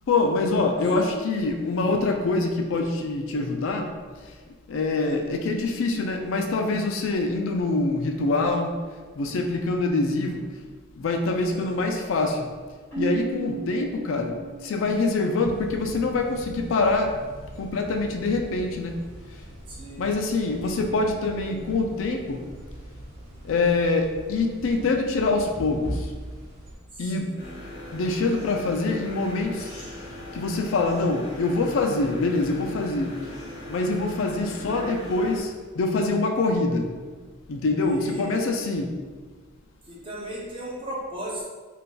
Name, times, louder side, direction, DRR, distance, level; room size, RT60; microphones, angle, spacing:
voice 1, 0.1-3.8 4.7-8.7 9.2-10.4 11.0-12.4 13.0-14.3 14.6-17.1 17.6-18.9 20.0-22.4 23.5-25.8 27.0-27.3 27.9-29.6 30.4-33.1 33.7-35.5 35.8-36.8 37.5-38.9, left 3 dB, 65° left, 3 dB, 0.4 m, -24 dB
voice 2, 0.8-1.1 1.8-1.9 4.9-5.2 11.5-11.8 19.7-20.1 20.6-21.0 21.5-21.7 26.9-27.5 34.6-35.0 37.8-38.4 39.8-41.5, equal, 25° right, -4 dB, 0.6 m, -37 dB
Keyboard (musical), 12.9-15.6, right 4 dB, 10° left, 1.2 m, -35 dB
sound 1, 15.4-26.8, right 1 dB, 90° right, 0.8 m, -41 dB
sound 2, 27.4-35.4, left 1 dB, 45° left, 1.4 m, -40 dB
3.7 x 2.6 x 2.3 m, 1.4 s
head